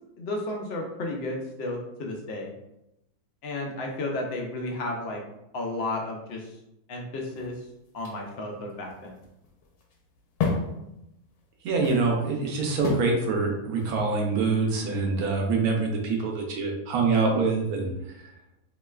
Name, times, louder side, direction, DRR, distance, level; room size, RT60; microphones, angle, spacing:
voice 1, 0.2-2.5 3.4-5.2 5.5-6.5 6.9-7.6 7.9-9.2, left 2 dB, 65° left, 1 dB, 0.6 m, -33 dB
sound 1, 7.2-14.8, left 4 dB, 85° left, 1.1 m, -35 dB
voice 2, 11.6-17.9 18.2-18.3, right 4 dB, 75° right, 1 dB, 1.1 m, -25 dB
3.1 x 3.0 x 2.3 m, 0.86 s
omnidirectional pair, 1.6 m